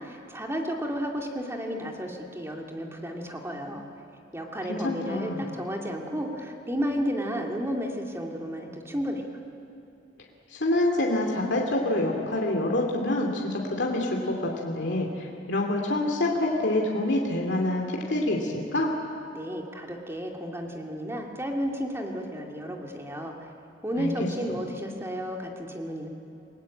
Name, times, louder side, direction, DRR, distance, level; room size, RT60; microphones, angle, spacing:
voice 1, 0.0-3.8 4.3-9.3 19.3-23.5 23.8-26.1, equal, 15° right, 1 dB, 2.7 m, -32 dB
voice 2, 4.7-5.4 10.5-18.9 24.0-24.1, left 1 dB, 65° left, 0 dB, 2.7 m, -26 dB
29.5 x 19.0 x 8.7 m, 2.8 s
head